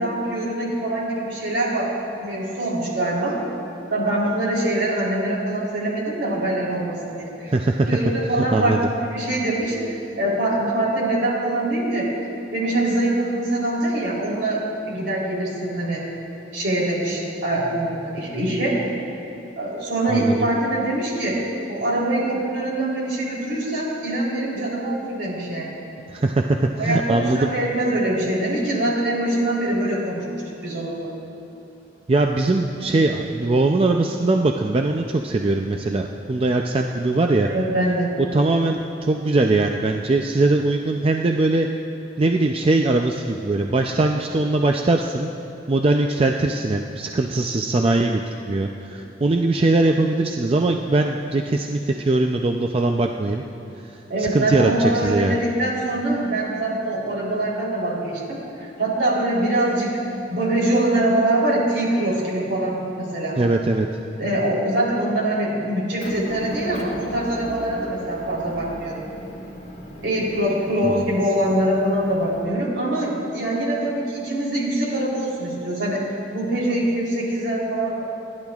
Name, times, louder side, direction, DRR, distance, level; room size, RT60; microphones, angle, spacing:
voice 1, 0.0-1.9 2.2-3.4 3.9-7.5 7.8-8.8 9.1-12.1 12.5-16.1 16.5-18.8 19.6-21.4 21.7-25.7 26.8-31.1 37.5-38.1 54.1-60.0 60.3-63.4 64.2-69.0 70.0-76.1 76.3-78.0, right 1 dB, 70° right, -4 dB, 3.5 m, -23 dB
voice 2, 7.5-7.9 8.4-8.8 20.1-20.5 26.1-27.5 32.1-37.5 38.3-41.7 42.2-45.3 45.7-53.4 54.2-55.4 63.4-63.9 70.9-71.0, right 2 dB, 30° right, 3 dB, 0.4 m, -21 dB
Motor vehicle (road) / Engine, 66.0-72.4, equal, 40° left, 1.7 m, -37 dB
29.0 x 10.5 x 2.4 m, 3.0 s
head